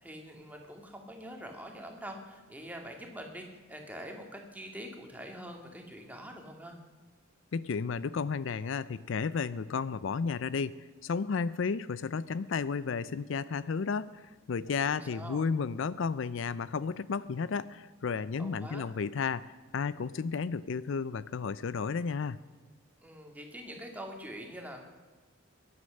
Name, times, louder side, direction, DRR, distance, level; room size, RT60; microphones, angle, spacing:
voice 1, 0.0-6.8 14.7-15.4 18.4-18.8 23.0-24.8, equal, 5° right, 2 dB, 2.3 m, -45 dB
voice 2, 7.5-22.4, left 5 dB, 65° left, 18 dB, 0.4 m, -33 dB
23.0 x 9.7 x 6.5 m, 1.4 s
head